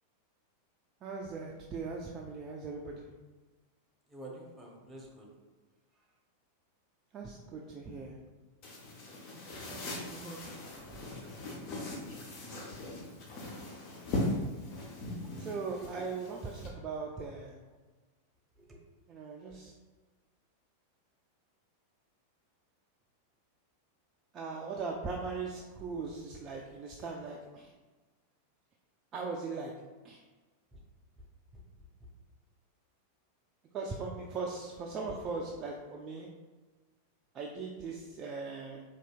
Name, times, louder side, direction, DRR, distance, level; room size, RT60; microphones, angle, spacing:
voice 1, 1.0-3.1 7.1-8.2 9.7-9.8 10.1-10.4 15.4-17.6 19.1-19.7 24.3-27.7 29.1-29.7 30.0-30.2 33.7-36.3 37.3-38.8, right 4 dB, 30° right, -1 dB, 0.3 m, -39 dB
voice 2, 4.1-5.3 15.1-15.2 15.8-16.1 18.6-18.7 30.7-30.8 35.1-35.4, right 1 dB, 10° right, -2 dB, 0.9 m, -48 dB
sound 1, 8.6-16.7, left 2 dB, 40° left, 0.7 m, -39 dB
4.3 x 2.8 x 2.4 m, 1.3 s
figure-of-eight pair, 90°, 0 cm